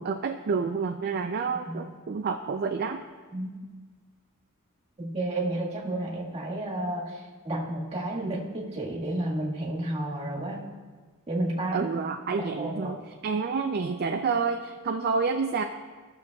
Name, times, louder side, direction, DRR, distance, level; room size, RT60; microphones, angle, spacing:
voice 1, 0.0-3.0 11.7-15.6, right 5 dB, 45° right, 5 dB, 0.4 m, -29 dB
voice 2, 5.0-10.7 11.3-11.9 12.4-13.0, right 1 dB, 30° right, -4 dB, 1.7 m, -31 dB
16.5 x 6.7 x 2.3 m, 1.4 s
head